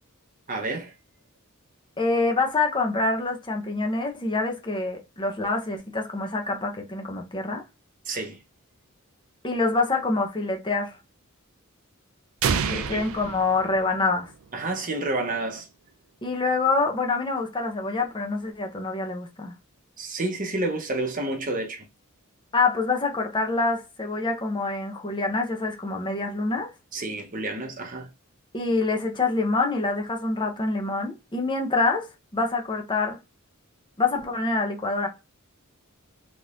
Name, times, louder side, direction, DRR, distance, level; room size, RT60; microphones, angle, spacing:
voice 1, 0.5-0.9 8.0-8.4 12.5-13.0 14.5-15.7 20.0-21.9 26.9-28.1, right 2 dB, 40° right, 0.9 m, -30 dB
voice 2, 2.0-7.6 9.4-11.0 12.7-14.3 16.2-19.5 22.5-26.7 28.5-32.1 32.3-33.2 34.0-35.1, left 3 dB, 20° left, 0.8 m, -26 dB
sound 1, 12.4-14.3, right 6 dB, 75° right, 0.4 m, -28 dB
3.8 x 3.0 x 2.5 m
head